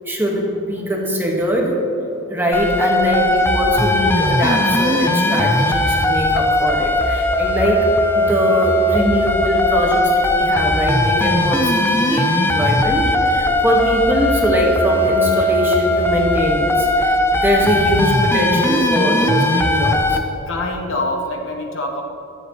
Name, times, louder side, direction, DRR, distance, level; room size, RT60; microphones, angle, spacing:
voice 1, 0.0-1.8 2.3-7.9 8.1-20.2, equal, 10° right, -1 dB, 1.5 m, -21 dB
sound 1, 2.5-20.2, left 1 dB, 10° left, 0.6 m, -18 dB
voice 2, 20.5-22.0, left 1 dB, 65° left, 2 dB, 1.3 m, -26 dB
23.0 x 8.1 x 3.1 m, 2.9 s
head